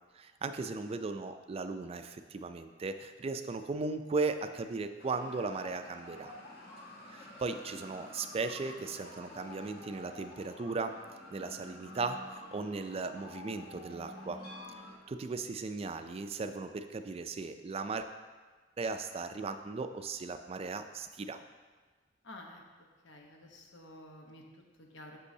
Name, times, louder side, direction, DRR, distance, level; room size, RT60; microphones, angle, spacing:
voice 1, 0.1-6.3 7.1-10.9 11.3-14.4 15.1-18.1 18.8-21.4, right 3 dB, 35° right, 8 dB, 0.4 m, -37 dB
sound 1, 5.0-15.0, left 1 dB, 55° left, 1.1 m, -49 dB
voice 2, 22.2-22.6 23.0-24.4 24.8-25.2, left 1 dB, 85° left, 1 dB, 1.0 m, -50 dB
8.2 x 6.2 x 2.7 m, 1.4 s
head